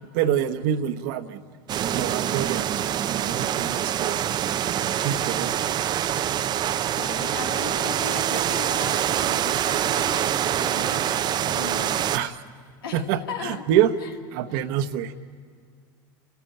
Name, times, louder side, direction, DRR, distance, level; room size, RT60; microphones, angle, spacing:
voice 1, 0.1-1.4 1.9-2.7 3.1-4.3 5.0-5.5 7.9-8.4 12.1-12.4 12.9-13.9 14.3-15.1, right 10 dB, 70° right, 10 dB, 1.1 m, -26 dB
sound 1, 1.7-12.2, right 10 dB, 40° right, 0.6 m, -25 dB
voice 2, 6.9-12.2 12.8-13.0 13.3-13.6 14.0-14.1, left 6 dB, 90° left, 3 dB, 2.4 m, -37 dB
28.5 x 13.0 x 8.9 m, 2.1 s
supercardioid pair, 105°, 12 cm